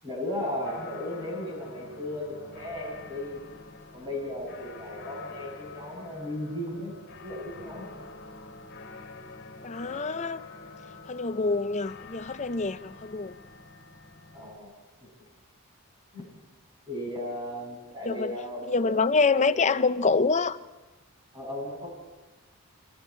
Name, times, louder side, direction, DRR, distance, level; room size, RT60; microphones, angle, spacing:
voice 1, 0.0-3.4 3.9-8.0 14.3-14.7 15.0-15.1 16.1-16.3 16.9-18.9 19.4-19.8 21.3-21.9, left 1 dB, 20° right, 7.9 m, -36 dB
sound 1, 0.6-14.6, left 4 dB, 50° left, 2.8 m, -46 dB
voice 2, 9.6-10.4 11.1-13.4 18.1-18.4 18.7-20.6, left 4 dB, 30° left, 0.6 m, -26 dB
29.0 x 24.5 x 4.5 m
head